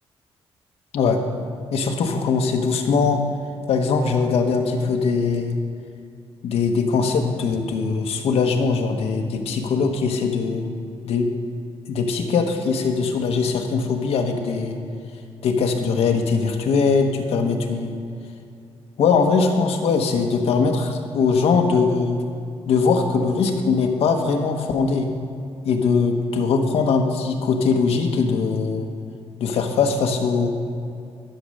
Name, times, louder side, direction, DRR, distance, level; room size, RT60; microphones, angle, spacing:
voice 1, 1.7-3.2 3.7-5.6 6.4-10.6 11.0-11.3 11.9-14.8 15.4-17.9 19.0-22.2 22.7-25.1 25.6-28.9 29.4-30.5, left 5 dB, 75° left, 4 dB, 1.2 m, -21 dB
12.0 x 6.6 x 6.4 m, 2.5 s
wide cardioid pair, 155°, 10 cm